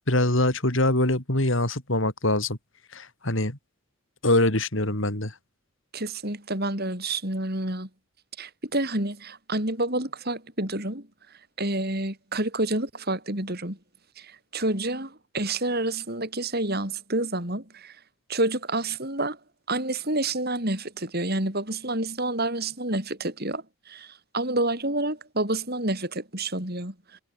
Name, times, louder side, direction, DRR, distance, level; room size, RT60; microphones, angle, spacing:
voice 1, 0.1-2.6 2.9-3.6 4.2-5.3, left 1 dB, 55° left, 3.9 m, -23 dB
voice 2, 5.9-7.9 8.4-11.1 11.6-13.8 14.2-18.0 18.3-19.4 19.7-26.9, right 2 dB, 45° right, 5.8 m, -29 dB
head